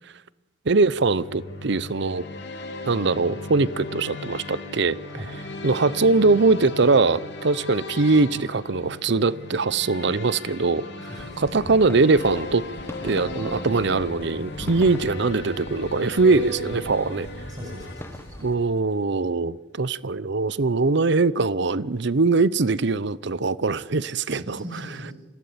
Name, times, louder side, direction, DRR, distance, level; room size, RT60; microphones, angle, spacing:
voice 1, 0.7-2.3 2.9-5.2 5.6-10.8 11.4-12.6 13.0-17.3 18.4-24.6, right 3 dB, 65° right, 0.7 m, -22 dB
sound 1, 0.9-18.7, left 2 dB, 65° left, 3.1 m, -37 dB
voice 2, 5.1-5.4 11.0-11.4 14.6-14.7 17.5-18.4 24.3-25.1, equal, 25° right, 6.0 m, -39 dB
sound 2, 11.2-18.6, left 1 dB, 15° left, 1.2 m, -42 dB
26.5 x 16.5 x 8.7 m
head